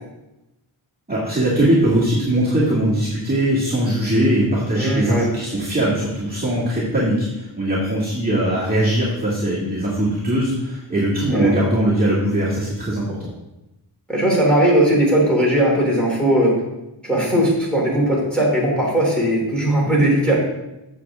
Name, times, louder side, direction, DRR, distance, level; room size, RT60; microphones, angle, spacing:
voice 1, 1.1-13.3, right 1 dB, 20° right, -9 dB, 2.3 m, -20 dB
voice 2, 4.7-5.3 11.3-11.5 14.1-16.5 17.0-20.4, right 1 dB, ahead, -5 dB, 3.2 m, -18 dB
8.0 x 7.2 x 3.7 m, 0.94 s
wide cardioid pair, 85°, 49 cm